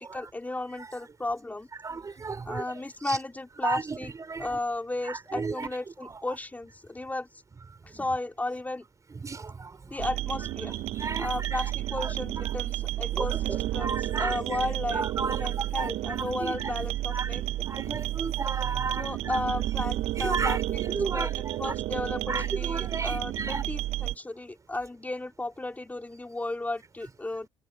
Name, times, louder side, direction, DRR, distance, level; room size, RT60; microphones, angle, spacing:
voice 1, 0.0-2.0 2.5-4.1 4.4-7.3 7.9-8.8 9.9-10.7 11.2-17.4 19.0-20.8 21.0-27.5, left 2 dB, 15° left, 4.1 m, -34 dB
voice 2, 1.8-3.2 3.6-4.6 5.0-5.7 6.0-6.2 7.9-8.0 9.1-9.8 10.9-11.7 12.0-12.1 13.1-14.4 14.9-16.7 17.1-17.4 17.7-19.4 20.2-21.3 21.6-21.7 22.3-23.6 24.0-24.1, right 4 dB, 30° right, 4.9 m, -34 dB
sound 1, 10.0-24.1, right 14 dB, 60° right, 0.6 m, -31 dB
supercardioid pair, 75°, 12 cm